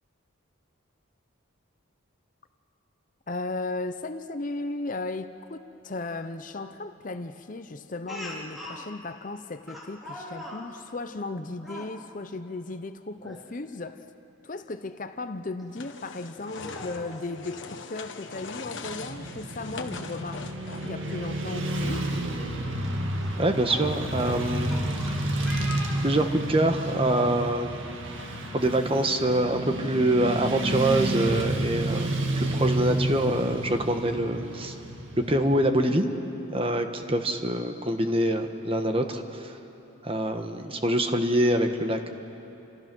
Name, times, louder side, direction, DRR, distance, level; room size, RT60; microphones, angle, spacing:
voice 1, 3.3-14.1 14.4-20.5 20.8-22.1, left 2 dB, 40° left, 10 dB, 0.7 m, -36 dB
Speech, 8.1-8.8 9.7-10.6 11.6-11.9 13.2-13.4 13.8-13.9 15.6-15.7 16.5-17.4 18.7-18.8 19.1-19.2 21.1-21.2 21.8-22.1 23.2-26.5, left 1 dB, ahead, 3.2 m, -41 dB
sound 1, 15.7-21.1, left 4 dB, 60° left, 1.4 m, -41 dB
Motorcycle / Traffic noise roadway noise, 18.8-35.5, right 1 dB, 65° right, 2.0 m, -30 dB
voice 2, 23.4-24.8 26.0-27.9 28.5-34.7 35.3-36.1 36.5-39.6 40.0-42.1, right 1 dB, 25° right, 6 dB, 1.2 m, -25 dB
29.0 x 26.5 x 6.2 m, 3.0 s
head